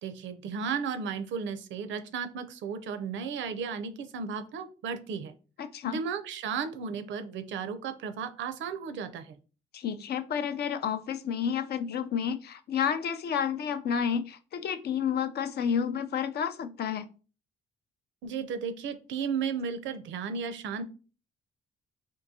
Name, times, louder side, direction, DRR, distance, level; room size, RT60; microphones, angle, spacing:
voice 1, 0.0-5.3 5.8-9.4 18.2-20.8, right 6 dB, 70° right, 11 dB, 0.5 m, -34 dB
voice 2, 5.6-6.0 9.7-17.1, left 7 dB, 55° left, 10 dB, 0.4 m, -30 dB
3.7 x 2.6 x 2.6 m, 0.36 s
cardioid pair, 90°, 20 cm